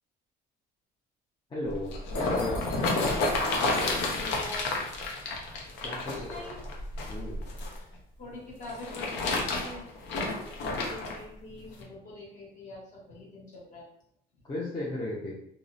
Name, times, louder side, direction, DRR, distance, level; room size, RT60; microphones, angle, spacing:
voice 1, 1.5-2.6 5.8-6.5 7.1-7.4 14.4-15.3, left 1 dB, 25° left, -6 dB, 0.5 m, -35 dB
sound 1, 1.7-7.8 8.6-11.2 11.8-11.9, left 2 dB, 80° left, 0.6 m, -30 dB
voice 2, 4.1-4.8 6.1-6.6 8.2-9.9 10.3-13.8, left 2 dB, 45° left, -5 dB, 1.1 m, -44 dB
2.7 x 2.0 x 2.4 m, 0.74 s
cardioid pair, 135°, 18 cm